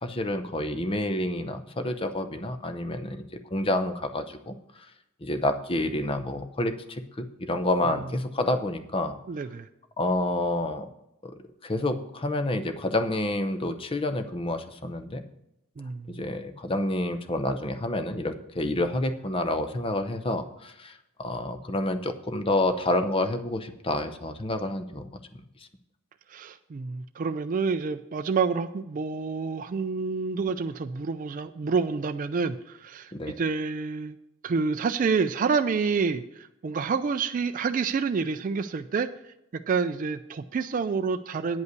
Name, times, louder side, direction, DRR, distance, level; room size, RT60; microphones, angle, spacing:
voice 1, 0.0-3.2 3.5-4.5 5.2-9.2 10.0-10.9 11.2-11.3 11.6-15.2 16.1-20.9 21.2-25.1 33.1-33.4, left 1 dB, 25° left, 9 dB, 0.6 m, -28 dB
voice 2, 9.3-9.7 15.8-16.2 26.3-34.2 34.4-41.6, right 5 dB, 35° right, 8 dB, 0.3 m, -28 dB
9.2 x 5.4 x 8.1 m, 0.85 s
head